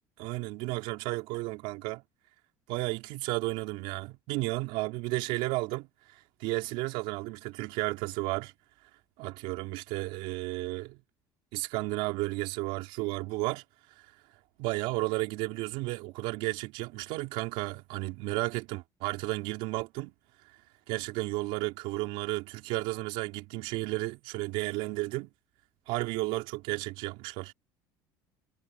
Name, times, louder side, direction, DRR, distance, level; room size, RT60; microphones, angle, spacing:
voice 1, 0.2-2.0 2.7-8.5 9.2-11.0 11.5-13.6 14.0-14.1 14.6-20.1 20.9-25.3 25.9-27.5, right 21 dB, 75° right, 4.2 m, -33 dB
supercardioid pair, 110°, 9 cm